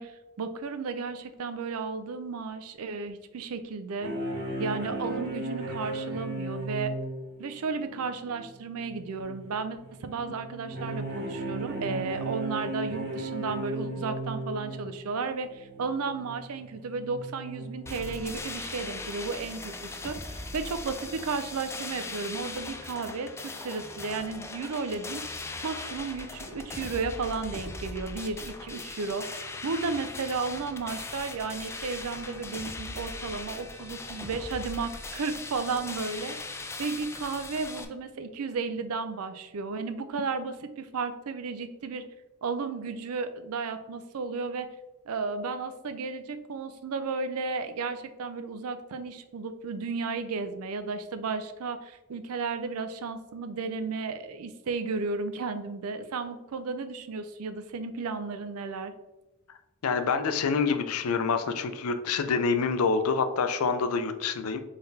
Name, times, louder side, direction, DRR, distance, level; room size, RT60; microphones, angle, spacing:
voice 1, 0.0-4.1 4.6-6.9 7.4-25.2 25.6-42.1 42.4-44.7 45.1-58.9, right 4 dB, 75° right, 10 dB, 0.5 m, -33 dB
sound 1, 4.0-18.5 19.0-19.4 19.8-19.9 20.2-20.3, right 2 dB, 45° right, 1.1 m, -37 dB
sound 2, 17.9-37.9, left 3 dB, 10° left, 0.3 m, -39 dB
voice 2, 59.8-64.6, left 5 dB, 75° left, 8 dB, 0.5 m, -27 dB
3.8 x 3.4 x 4.0 m, 1.0 s
head